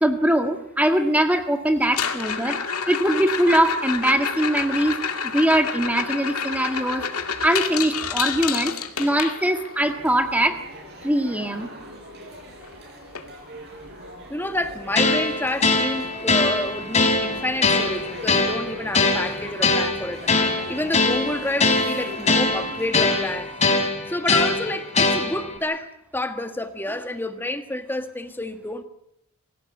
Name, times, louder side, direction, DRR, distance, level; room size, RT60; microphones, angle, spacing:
voice 1, 0.0-2.6 2.9-5.0 5.3-7.1 7.4-10.6 11.0-11.7, right 1 dB, 5° right, 1.7 m, -22 dB
sound 1, 1.8-9.8 12.1-12.2 12.4-12.7 13.1-13.2 13.8-13.9 15.8-15.9, left 7 dB, 85° left, 2.2 m, -29 dB
sound 2, 9.8-22.9, equal, 50° right, 6.4 m, -41 dB
voice 2, 14.3-23.6 24.1-28.8, left 1 dB, 10° left, 1.5 m, -29 dB
sound 3, 15.0-25.6, left 3 dB, 30° left, 3.2 m, -22 dB
24.5 x 16.5 x 9.0 m
head